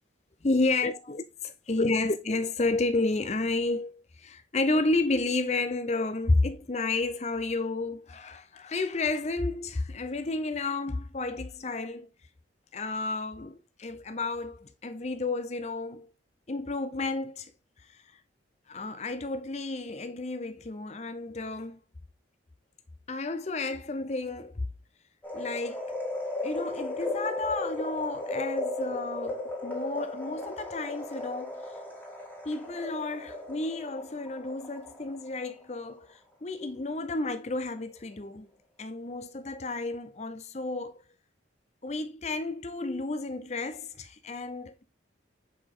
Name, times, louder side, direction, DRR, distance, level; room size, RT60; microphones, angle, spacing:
voice 1, 0.4-12.1 12.7-16.1 16.5-17.5 18.7-21.8 23.1-24.6 25.3-25.9 26.4-31.7 32.4-38.5 38.8-41.0 41.8-44.8, left 2 dB, 35° left, 0.6 m, -31 dB
sound 1, 25.2-35.5 35.9-36.0, left 2 dB, 10° left, 2.0 m, -35 dB
6.4 x 4.9 x 3.8 m
head